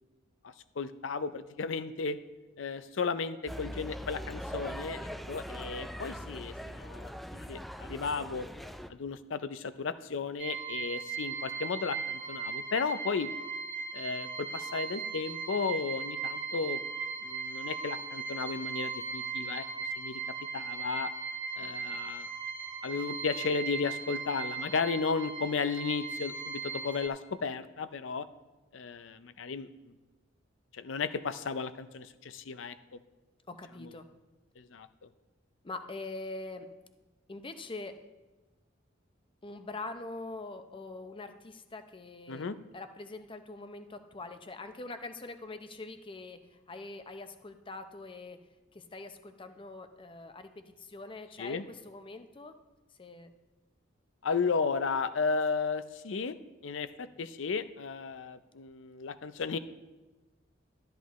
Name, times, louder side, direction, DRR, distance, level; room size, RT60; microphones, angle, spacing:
voice 1, 0.4-2.2 2.6-8.5 8.9-13.3 13.9-16.8 17.2-19.6 20.0-20.2 20.5-21.1 21.6-22.3 22.8-28.3 28.7-29.7 30.7-33.0 33.8-33.9 34.6-35.1 42.3-42.6 51.4-51.6 54.2-56.4 56.6-59.6, left 5 dB, 75° left, 13 dB, 0.5 m, -34 dB
sound 1, 3.5-8.9, equal, ahead, 0.3 m, -41 dB
sound 2, 10.4-27.1, right 5 dB, 35° right, 1.9 m, -38 dB
voice 2, 33.5-34.1 35.6-36.7 37.3-38.0 39.4-48.4 48.7-52.6 53.0-53.3, left 2 dB, 25° left, 8 dB, 0.7 m, -44 dB
12.5 x 10.0 x 3.1 m, 1.1 s
head